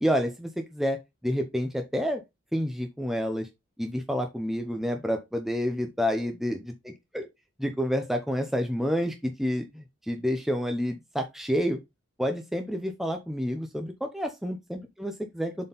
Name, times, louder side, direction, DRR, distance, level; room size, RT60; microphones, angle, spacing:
voice 1, 0.0-2.2 2.5-3.5 3.8-6.6 7.1-7.3 7.6-11.8 12.2-15.7, equal, ahead, 0.6 m, -29 dB
7.2 x 4.3 x 4.0 m
head